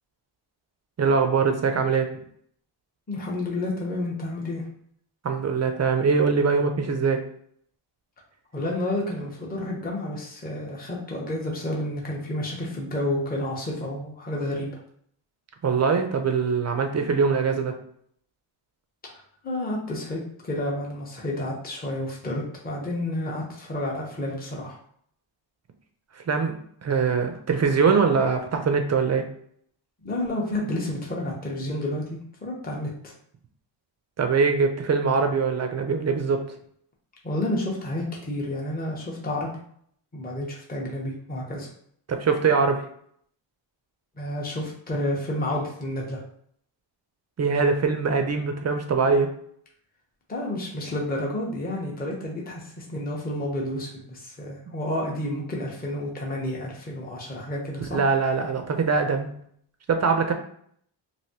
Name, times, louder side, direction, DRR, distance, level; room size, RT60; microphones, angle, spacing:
voice 1, 1.0-2.1 5.2-7.2 15.6-17.8 26.3-26.5 26.8-29.3 34.2-36.4 42.1-42.8 47.4-49.3 57.9-59.3 59.9-60.3, right 5 dB, 35° right, 5 dB, 0.4 m, -22 dB
voice 2, 3.1-4.6 8.5-14.7 19.4-24.8 30.0-33.1 37.2-39.5 40.1-41.7 44.2-46.2 50.3-58.0, left 1 dB, 20° left, -2 dB, 0.7 m, -30 dB
3.3 x 2.6 x 2.7 m, 0.65 s
wide cardioid pair, 130°, 49 cm